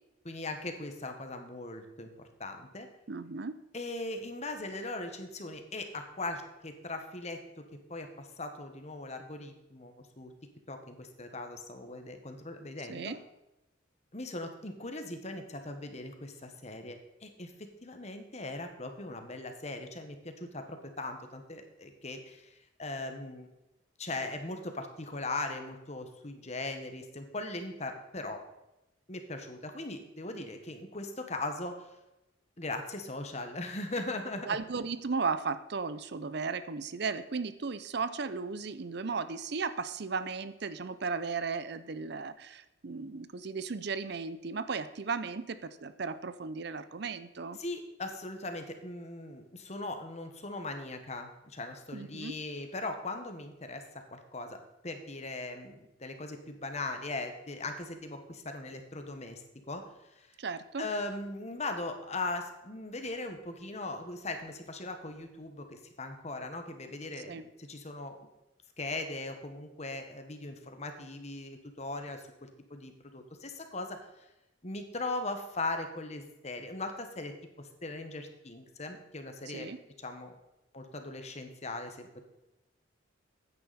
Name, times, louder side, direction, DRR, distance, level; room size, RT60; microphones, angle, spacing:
voice 1, 0.2-2.1 2.4-2.9 3.7-7.6 7.9-10.3 10.7-13.1 14.1-17.5 17.8-23.5 24.0-28.4 29.1-31.9 32.6-34.6 47.6-54.6 54.8-59.8 60.2-60.3 60.8-68.2 68.8-74.1 74.6-79.7 80.0-80.4 80.7-82.2, left 2 dB, 35° left, 6 dB, 1.4 m, -39 dB
voice 2, 3.1-3.6 12.9-13.2 34.4-47.6 51.9-52.4 60.4-60.9 67.3-67.5 79.5-79.8, right 4 dB, 55° right, 13 dB, 0.6 m, -35 dB
14.5 x 9.7 x 4.2 m, 0.92 s
head